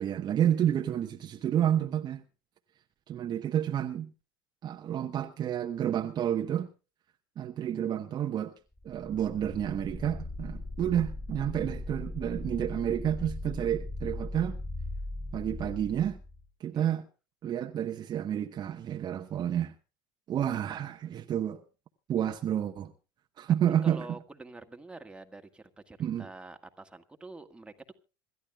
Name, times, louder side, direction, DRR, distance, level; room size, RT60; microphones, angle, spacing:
voice 1, 0.0-2.2 3.1-4.1 4.6-6.7 7.4-8.5 8.8-14.6 15.3-16.2 16.6-17.1 17.4-19.7 20.3-21.6 22.1-22.9 23.4-24.1 26.0-26.3, right 10 dB, 35° right, 1.0 m, -30 dB
sound 1, 8.8-16.5, left 2 dB, 15° left, 4.3 m, -39 dB
voice 2, 23.8-28.0, right 2 dB, 10° right, 1.8 m, -47 dB
26.5 x 13.5 x 2.3 m
figure-of-eight pair, 75°, 12 cm